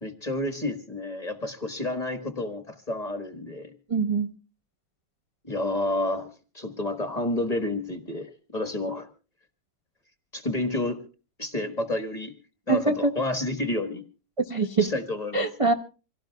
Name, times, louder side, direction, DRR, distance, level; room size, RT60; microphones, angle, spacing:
voice 1, 0.0-3.7 5.4-9.1 10.3-11.0 11.4-12.3 12.7-14.0 14.8-15.5, left 1 dB, 20° left, 8 dB, 1.3 m, -30 dB
voice 2, 3.9-4.3 12.7-13.1 14.5-14.9 15.3-15.7, right 3 dB, 25° right, 2 dB, 0.7 m, -23 dB
26.0 x 17.0 x 2.3 m, 0.35 s
omnidirectional pair, 2.2 m